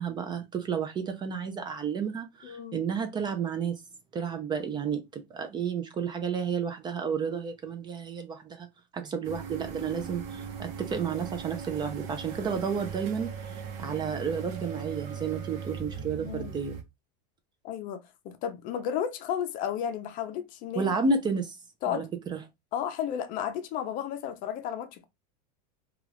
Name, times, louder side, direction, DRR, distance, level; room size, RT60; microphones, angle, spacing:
voice 1, 0.0-3.8 4.1-8.7 8.9-13.3 13.8-16.8 20.8-21.6 21.9-22.0 22.3-22.4, right 6 dB, 20° right, 0.4 m, -31 dB
voice 2, 2.4-2.9 16.3-16.6 17.6-21.0 21.8-22.1 22.7-25.1, left 9 dB, 40° left, 0.5 m, -33 dB
sound 1, 9.2-16.8, right 6 dB, 60° right, 0.8 m, -39 dB
2.3 x 2.3 x 3.2 m
supercardioid pair, 125°, 21 cm